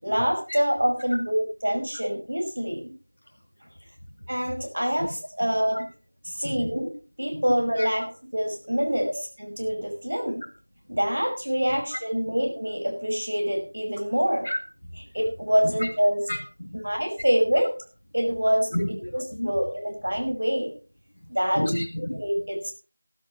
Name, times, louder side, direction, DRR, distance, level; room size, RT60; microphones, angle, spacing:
voice 1, 0.0-2.9 4.3-5.9 6.2-6.9 7.2-9.1 9.4-10.4 10.9-14.5 15.1-16.2 16.7-17.7 18.1-18.7 19.1-20.7 21.3-21.6 22.1-22.7, equal, 45° right, 2 dB, 5.5 m, -25 dB
voice 2, 6.4-6.9 7.3-7.4 7.8-7.9 11.9-12.0 14.4-14.6 15.6-15.9 16.3-16.8 18.7-19.5 21.5-22.2, left 1 dB, 35° left, 3 dB, 2.1 m, -30 dB
15.0 x 15.0 x 3.1 m, 0.35 s
figure-of-eight pair, 180°, 0 cm